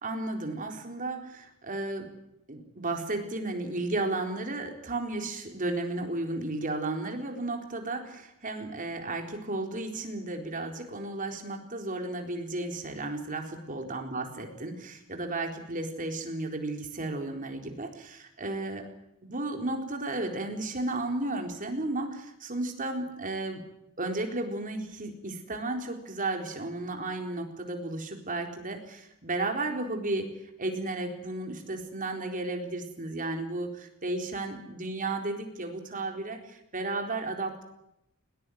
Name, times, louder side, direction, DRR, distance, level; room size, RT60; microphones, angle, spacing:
voice 1, 0.0-2.1 2.5-18.9 19.3-23.6 24.0-30.3 30.6-37.6, right 2 dB, 40° right, 3 dB, 4.1 m, -33 dB
20.5 x 20.0 x 9.4 m, 0.83 s
head